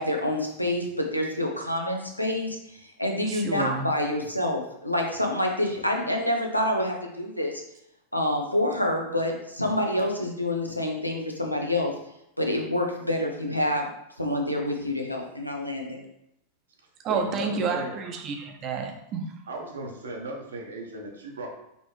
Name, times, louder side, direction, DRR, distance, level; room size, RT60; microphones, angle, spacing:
voice 1, 0.0-7.6 8.1-12.0 12.4-13.9 14.2-16.0, left 1 dB, 90° left, 1 dB, 0.7 m, -27 dB
voice 2, 3.3-3.9 17.0-19.3, right 5 dB, 35° right, 3 dB, 0.8 m, -30 dB
voice 3, 17.1-17.9 19.5-21.5, right 2 dB, 70° right, 1 dB, 1.0 m, -36 dB
5.3 x 3.1 x 3.2 m, 0.80 s
figure-of-eight pair, 90°, 0 cm